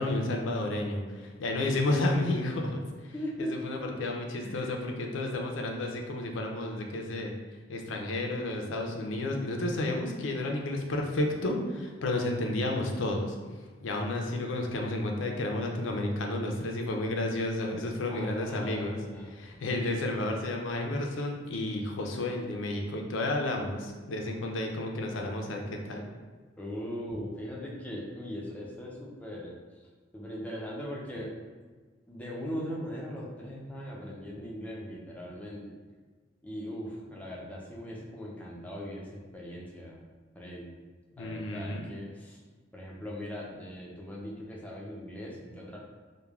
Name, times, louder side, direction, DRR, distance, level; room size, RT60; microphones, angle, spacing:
voice 1, 0.0-3.1 3.4-7.3 7.7-13.4 13.8-19.0 19.3-26.1 41.2-41.8, left 2 dB, 85° left, 2 dB, 0.4 m, -31 dB
voice 2, 3.1-3.5 4.4-4.7 18.1-19.4 26.6-29.6 30.1-31.3 32.1-35.6 36.4-40.0 40.3-40.7 41.1-42.4 42.7-45.8, equal, 10° left, -4 dB, 0.4 m, -39 dB
3.1 x 2.1 x 2.3 m, 1.4 s
head